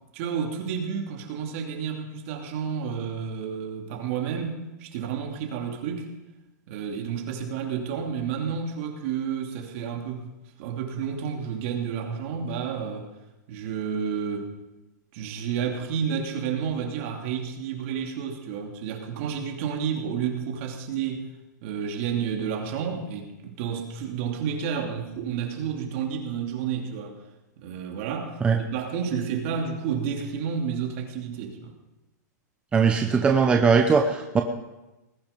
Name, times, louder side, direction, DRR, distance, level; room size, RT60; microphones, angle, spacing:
voice 1, 0.1-6.1 6.7-10.3 10.6-13.1 13.5-14.5 15.1-21.3 21.6-27.2 27.6-31.7, right 7 dB, 45° right, 2 dB, 2.7 m, -30 dB
voice 2, 32.7-34.4, right 5 dB, 10° right, 4 dB, 0.7 m, -20 dB
19.5 x 10.5 x 5.3 m, 1.0 s
hypercardioid pair, 155°, 10 cm